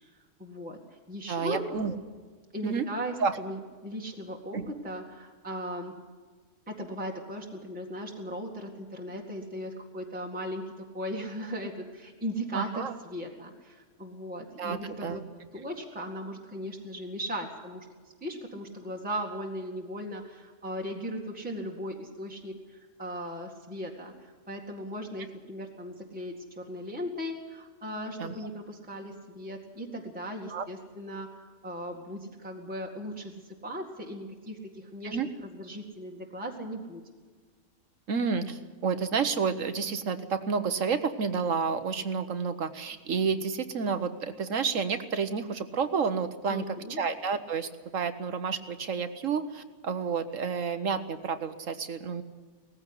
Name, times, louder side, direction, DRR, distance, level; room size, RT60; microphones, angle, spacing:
voice 1, 0.4-0.8 1.1-1.9 2.5-5.9 6.7-15.2 15.5-17.9 18.2-24.1 24.5-37.0 46.5-47.0, equal, 5° right, -1 dB, 2.0 m, -38 dB
voice 2, 1.3-2.0 2.6-2.9 3.2-3.4 4.5-4.6 12.5-12.9 14.6-15.2 28.2-28.3 30.5-30.6 35.0-35.3 38.1-46.6 47.0-52.2, right 5 dB, 60° right, 10 dB, 1.3 m, -30 dB
18.5 x 15.0 x 9.9 m, 1.4 s
omnidirectional pair, 1.6 m